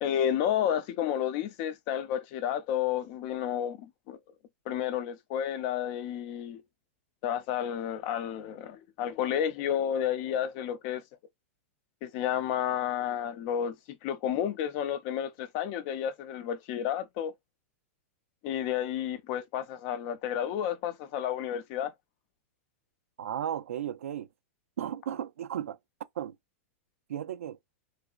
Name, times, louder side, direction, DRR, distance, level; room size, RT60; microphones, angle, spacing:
voice 1, 0.0-4.2 4.7-6.6 7.2-11.0 12.0-17.3 18.4-21.9, left 10 dB, 50° left, 0.6 m, -31 dB
voice 2, 23.2-24.3 24.8-25.8 26.2-26.4 27.1-27.6, right 10 dB, 85° right, 0.4 m, -34 dB
3.2 x 2.9 x 2.4 m
hypercardioid pair, 120°, 7 cm